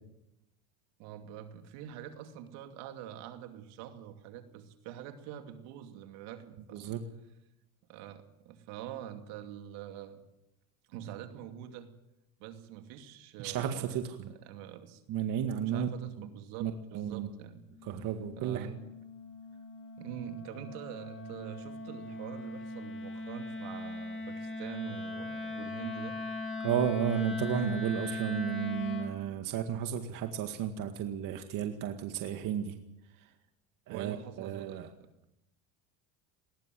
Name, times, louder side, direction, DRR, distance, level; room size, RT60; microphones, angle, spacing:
voice 1, 1.0-6.9 7.9-10.2 10.9-11.9 12.4-14.0 14.3-15.0 15.6-17.6 18.4-18.8 20.0-26.2 33.9-35.1, right 10 dB, 70° right, 6 dB, 2.7 m, -45 dB
voice 2, 13.4-14.3 15.1-15.9 16.2-16.3 16.6-17.3 17.8-18.7 26.6-32.7 33.9-34.9, right 9 dB, 50° right, 6 dB, 2.0 m, -33 dB
Wind instrument woodwind instrument, 17.7-29.2, left 2 dB, 30° left, 2.5 m, -40 dB
20.5 x 18.5 x 7.7 m, 0.89 s
supercardioid pair, 120°, 41 cm